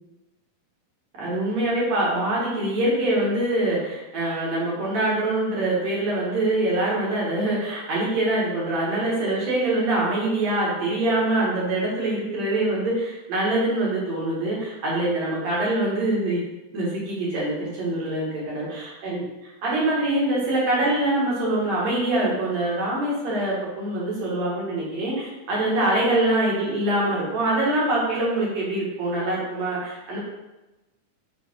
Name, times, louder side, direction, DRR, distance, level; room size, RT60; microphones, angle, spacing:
voice 1, 1.2-16.4 16.7-30.2, right 1 dB, 55° right, -6 dB, 3.1 m, -24 dB
7.4 x 3.7 x 4.8 m, 1.1 s
omnidirectional pair, 3.9 m